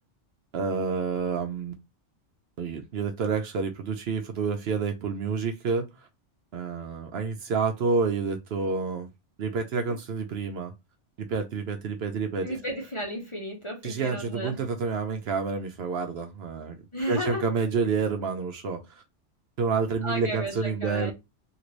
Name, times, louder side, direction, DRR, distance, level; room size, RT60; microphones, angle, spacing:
voice 1, 0.5-1.7 2.6-5.9 6.5-9.1 9.4-10.7 11.2-12.5 13.8-16.8 17.1-19.0 19.6-21.1, right 5 dB, 65° right, 0.8 m, -29 dB
voice 2, 12.4-14.6 16.9-17.4 20.0-21.1, equal, 30° left, 0.7 m, -33 dB
2.9 x 2.6 x 3.0 m
omnidirectional pair, 1.2 m